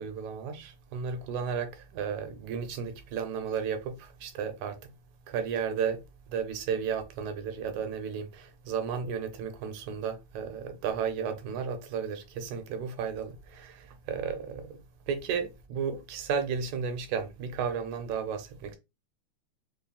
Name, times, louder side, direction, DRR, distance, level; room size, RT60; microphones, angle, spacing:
voice 1, 0.0-4.8 5.3-6.0 6.3-14.8 15.1-18.8, right 6 dB, 80° right, 2.1 m, -33 dB
5.4 x 3.2 x 2.3 m
omnidirectional pair, 3.4 m